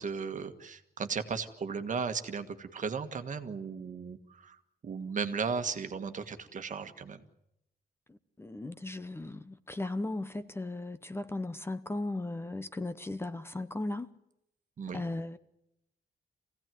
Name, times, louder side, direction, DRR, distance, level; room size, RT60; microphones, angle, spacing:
voice 1, 0.0-7.2 14.8-15.0, right 5 dB, 50° right, 1.6 m, -36 dB
voice 2, 8.4-14.1 14.9-15.4, left 2 dB, 15° left, 0.8 m, -36 dB
26.0 x 17.0 x 9.2 m
wide cardioid pair, 155°, 16 cm